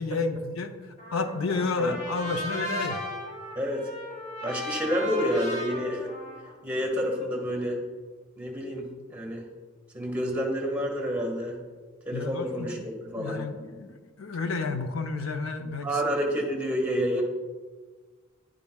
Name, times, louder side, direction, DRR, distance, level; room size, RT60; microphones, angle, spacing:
voice 1, 0.0-3.0 12.1-12.9 13.2-16.0, left 3 dB, 80° left, 7 dB, 0.6 m, -31 dB
Trumpet, 1.0-7.2, equal, 35° left, 3.0 m, -37 dB
voice 2, 3.5-3.9 4.4-6.1 6.6-7.8 8.4-9.4 9.9-11.6 12.0-12.8 13.1-13.4 15.8-17.2, equal, 10° right, 1 dB, 1.6 m, -29 dB
10.5 x 10.5 x 2.3 m, 1.4 s
head